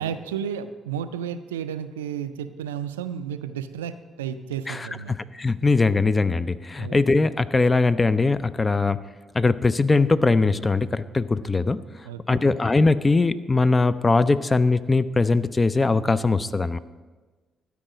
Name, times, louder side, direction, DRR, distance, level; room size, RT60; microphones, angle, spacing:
voice 1, 0.0-5.1 6.8-7.0 12.0-12.5, right 8 dB, 85° right, 11 dB, 0.3 m, -32 dB
voice 2, 4.7-9.0 9.3-11.8 12.3-16.8, left 3 dB, 30° left, 15 dB, 0.4 m, -21 dB
12.0 x 4.7 x 6.2 m, 1.3 s
hypercardioid pair, 45°, 0 cm